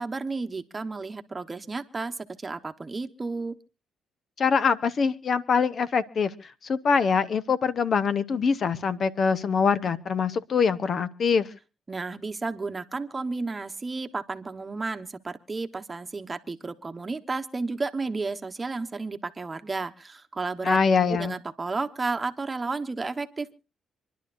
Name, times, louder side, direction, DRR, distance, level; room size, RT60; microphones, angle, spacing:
voice 1, 0.0-3.6 11.9-20.8 21.1-23.5, right 3 dB, 25° right, 8 dB, 1.1 m, -32 dB
voice 2, 4.4-6.3 6.6-11.5 20.6-21.3, left 5 dB, 50° left, 13 dB, 1.0 m, -24 dB
27.0 x 11.0 x 2.6 m, 0.31 s
cardioid pair, 90°, 0 cm